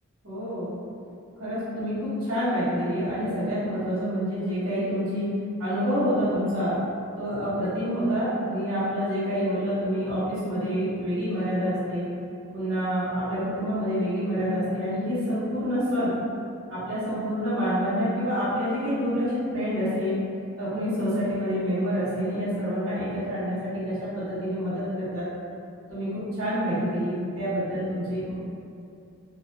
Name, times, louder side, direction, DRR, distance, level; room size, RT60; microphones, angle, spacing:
voice 1, 0.2-0.7 1.4-5.3 5.6-6.7 7.2-12.1 12.5-16.1 16.7-20.2 20.6-25.2 25.9-28.3, equal, 85° right, -12 dB, 1.0 m, -27 dB
2.4 x 2.3 x 2.3 m, 2.5 s
head